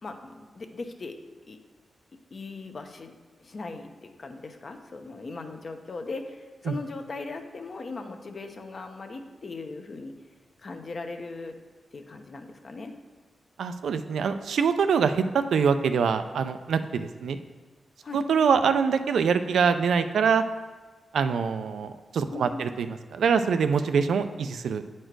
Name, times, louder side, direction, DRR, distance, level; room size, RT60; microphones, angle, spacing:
voice 1, 0.0-1.2 1.5-1.6 2.3-3.1 3.4-10.1 10.6-11.6 11.9-12.9 18.0-18.2 22.3-22.6, left 3 dB, 55° left, 5 dB, 0.8 m, -39 dB
voice 2, 13.6-17.4 18.1-20.4 21.1-24.8, right 6 dB, 85° right, 9 dB, 0.4 m, -24 dB
8.9 x 4.4 x 4.6 m, 1.3 s
cardioid pair, 70°, 0 cm